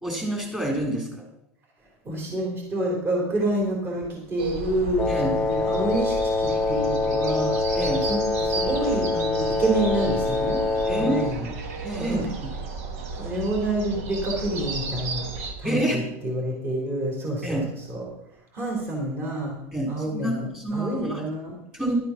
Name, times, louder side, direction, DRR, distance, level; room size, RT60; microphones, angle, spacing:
voice 1, 0.0-1.2 5.1-5.4 7.7-8.0 10.9-12.2 15.6-16.0 17.4-17.7 19.7-21.2 21.7-21.9, right 1 dB, 10° right, 0 dB, 3.6 m, -28 dB
voice 2, 2.0-7.8 8.0-10.6 11.0-11.5 12.0-12.3 13.1-15.3 15.6-18.1 18.5-19.5 19.9-21.6, right 1 dB, 30° right, -1 dB, 3.9 m, -28 dB
sound 1, 4.4-15.5, right 4 dB, 80° right, 1.9 m, -34 dB
Wind instrument woodwind instrument, 5.0-11.4, left 3 dB, 15° left, 0.5 m, -25 dB
12.0 x 8.2 x 5.9 m, 0.80 s
supercardioid pair, 135°, 8 cm